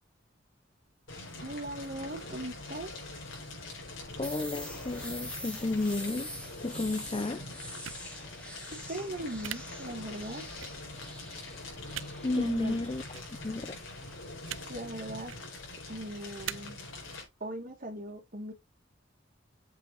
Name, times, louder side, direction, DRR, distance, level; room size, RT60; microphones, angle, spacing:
Fire, 1.1-17.2, left 2 dB, 85° left, 4.4 m, -44 dB
voice 1, 1.4-2.9 8.7-10.5 12.3-12.8 14.7-15.3 15.9-16.8 17.4-18.5, right 1 dB, 45° right, 2.1 m, -39 dB
voice 2, 4.2-6.3 6.6-7.5 12.2-13.8, left 2 dB, 25° left, 0.5 m, -32 dB
sound 1, 4.2-15.9, equal, 5° left, 2.2 m, -46 dB
sound 2, 7.8-8.0 9.4-9.6 10.6-10.7 11.9-12.1 13.1-13.3 14.4-14.6 15.2-15.4 16.4-16.5, right 12 dB, 80° right, 0.5 m, -39 dB
7.7 x 5.1 x 4.2 m
head